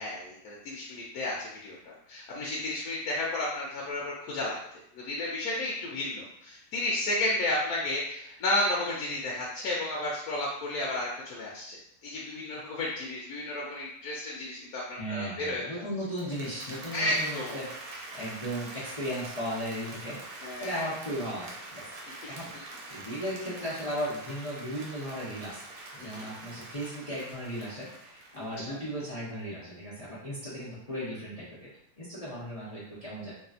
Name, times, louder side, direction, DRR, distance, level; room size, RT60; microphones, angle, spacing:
voice 1, 0.0-4.6 5.0-11.8 12.0-15.8 16.9-17.6 20.4-20.9 26.0-26.3 28.3-28.8, left 1 dB, 70° left, -4 dB, 1.1 m, -32 dB
voice 2, 15.0-17.7 18.1-21.9 22.3-25.6 26.0-31.7 32.0-33.3, equal, 40° left, -9 dB, 0.5 m, -36 dB
Applause, 16.0-29.0, right 2 dB, 75° right, 1.1 m, -44 dB
2.9 x 2.7 x 2.4 m, 0.73 s
omnidirectional pair, 1.8 m